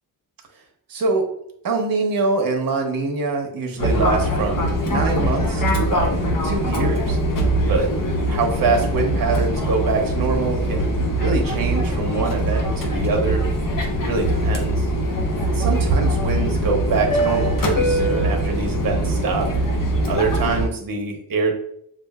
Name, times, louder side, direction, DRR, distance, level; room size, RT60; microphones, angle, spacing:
voice 1, 0.9-1.3 1.6-7.2 7.7-7.9 8.3-10.9 11.2-13.4 14.0-14.9 15.5-19.5 20.1-21.5, right 3 dB, 65° right, 2 dB, 0.9 m, -24 dB
Fixed-wing aircraft airplane, 3.8-20.7, right 1 dB, 60° left, 0.8 m, -22 dB
6.8 x 2.4 x 2.3 m, 0.72 s
wide cardioid pair, 130°, 37 cm